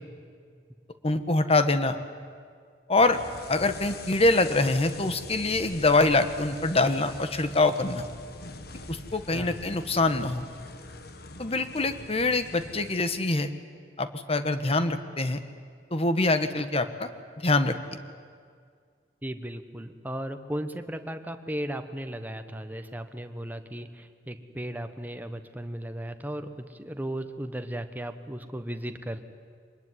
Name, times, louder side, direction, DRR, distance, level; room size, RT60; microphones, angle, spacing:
voice 1, 1.0-2.0 2.9-3.2 3.5-8.0 8.9-10.4 11.4-13.5 14.0-15.4 15.9-17.1 17.4-17.8, left 2 dB, 35° left, 10 dB, 1.4 m, -24 dB
sound 1, 3.0-13.0, left 2 dB, 60° left, 1.6 m, -43 dB
voice 2, 19.2-29.2, right 1 dB, 10° right, 8 dB, 1.3 m, -36 dB
24.5 x 20.5 x 9.9 m, 2.1 s
head